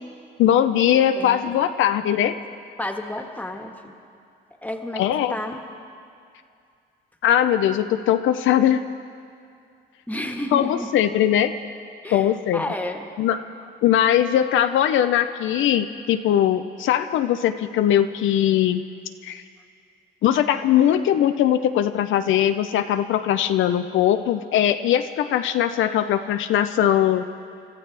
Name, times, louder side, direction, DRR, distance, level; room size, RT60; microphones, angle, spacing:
voice 1, 0.4-2.4 5.0-5.3 7.2-8.8 10.5-11.5 12.1-12.6 13.2-13.4 13.8-18.8 19.2-19.4 20.2-27.2, left 10 dB, 80° left, 8 dB, 0.6 m, -20 dB
voice 2, 1.2-1.6 2.8-3.9 4.6-5.0 5.3-5.6 10.1-10.9 12.0-13.1, left 1 dB, 10° left, 3 dB, 1.5 m, -31 dB
27.5 x 13.5 x 3.4 m, 2.4 s
cardioid pair, 90°, 20 cm